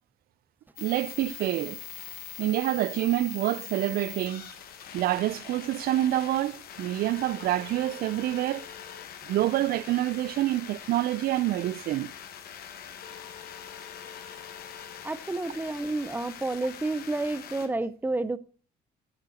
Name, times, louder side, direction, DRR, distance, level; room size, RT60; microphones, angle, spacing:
sound 1, 0.8-17.7, left 9 dB, 65° left, 1.6 m, -43 dB
voice 1, 0.8-1.8 2.4-4.5 4.9-8.7 9.3-12.1, right 14 dB, 65° right, 0.5 m, -27 dB
voice 2, 15.0-18.4, right 2 dB, 10° right, 0.7 m, -30 dB
10.0 x 6.6 x 6.4 m
cardioid pair, 110°, 17 cm